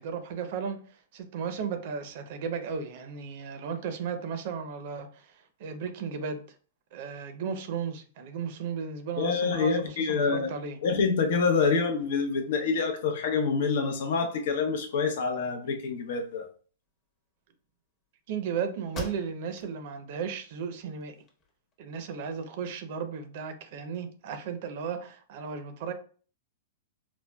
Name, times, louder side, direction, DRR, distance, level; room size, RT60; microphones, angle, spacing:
voice 1, 0.0-6.4 6.9-10.8 18.3-21.2 21.8-25.9, right 6 dB, 55° right, 0.5 m, -35 dB
voice 2, 9.2-10.5 10.8-16.5, left 5 dB, 65° left, 0.7 m, -26 dB
sound 1, 18.3-18.4 18.9-19.7 20.2-20.3 20.8-21.7, left 2 dB, 25° left, 0.9 m, -42 dB
4.3 x 2.1 x 2.2 m
hypercardioid pair, 130°, 0 cm